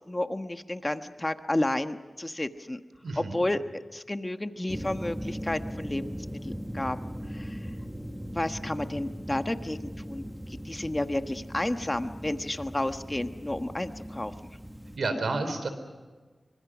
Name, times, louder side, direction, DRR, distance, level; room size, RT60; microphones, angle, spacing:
voice 1, 0.1-2.8 3.2-7.0 7.3-7.6 8.3-10.2 10.6-14.3, left 1 dB, 25° left, 8 dB, 1.3 m, -31 dB
voice 2, 3.0-3.4 14.9-15.7, right 3 dB, 80° right, 9 dB, 3.8 m, -30 dB
sound 1, 4.7-15.0, equal, 10° right, 1.6 m, -39 dB
25.5 x 24.5 x 6.2 m, 1.4 s
cardioid pair, 50°, 0 cm